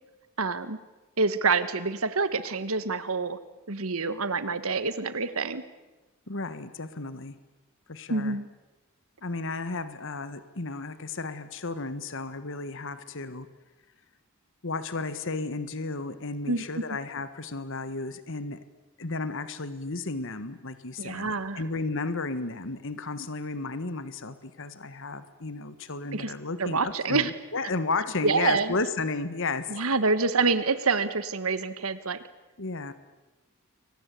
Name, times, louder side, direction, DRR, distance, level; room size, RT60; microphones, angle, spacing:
voice 1, 0.4-0.8 1.2-3.4 3.7-5.6 8.1-8.5 16.5-16.8 21.0-21.6 26.1-26.3 26.6-27.3 28.2-28.7 29.7-32.2, right 4 dB, 70° right, 13 dB, 1.5 m, -27 dB
voice 2, 6.3-7.4 7.9-8.4 9.2-13.5 14.6-18.6 19.0-29.8 32.6-32.9, left 3 dB, 60° left, 12 dB, 1.5 m, -33 dB
29.0 x 24.0 x 8.4 m, 1.1 s
head